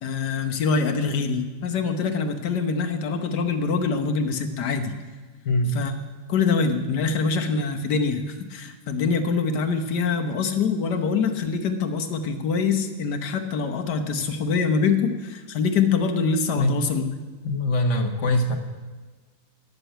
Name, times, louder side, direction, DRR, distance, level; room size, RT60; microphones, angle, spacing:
voice 1, 0.0-4.9 5.7-5.9 6.3-17.0, left 5 dB, 85° left, 5 dB, 1.6 m, -24 dB
voice 2, 17.4-18.6, left 1 dB, 50° left, 3 dB, 1.4 m, -22 dB
9.9 x 6.8 x 9.0 m, 1.4 s
omnidirectional pair, 1.7 m